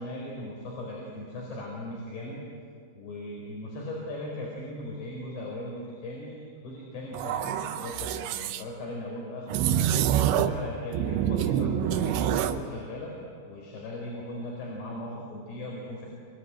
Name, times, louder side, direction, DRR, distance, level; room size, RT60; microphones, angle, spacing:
voice 1, 0.0-2.4 3.0-9.6 10.3-13.1 13.4-16.1, left 1 dB, 70° left, -3 dB, 6.6 m, -38 dB
sound 1, 7.1-8.6 9.5-10.6 10.9-12.6, right 10 dB, 85° right, 3.2 m, -26 dB
26.5 x 24.5 x 9.0 m, 2.4 s
omnidirectional pair, 5.1 m